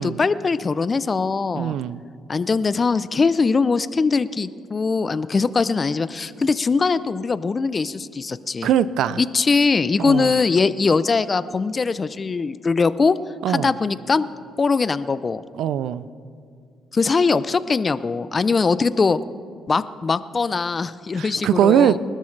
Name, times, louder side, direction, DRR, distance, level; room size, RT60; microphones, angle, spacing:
voice 1, 0.0-1.8 2.3-8.7 9.2-13.2 13.5-14.3 14.6-15.4 16.9-19.2 19.7-22.0, left 4 dB, 35° left, 15 dB, 0.5 m, -21 dB
voice 2, 1.5-2.0 8.6-9.2 10.0-10.4 13.4-13.7 15.6-16.0 21.2-22.0, right 9 dB, 80° right, 16 dB, 0.5 m, -21 dB
23.5 x 13.0 x 3.3 m, 2.2 s
cardioid pair, 90°, 0 cm